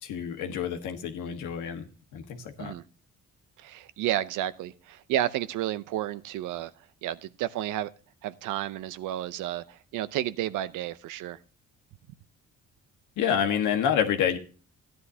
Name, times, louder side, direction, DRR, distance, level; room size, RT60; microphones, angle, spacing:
voice 1, 0.0-1.9 2.1-2.7 13.2-14.4, left 8 dB, 85° left, 5 dB, 1.4 m, -28 dB
voice 2, 3.6-6.7 7.0-7.9 8.2-11.4, right 13 dB, 90° right, 15 dB, 0.6 m, -31 dB
14.5 x 10.0 x 2.7 m, 0.38 s
cardioid pair, 90°, 30 cm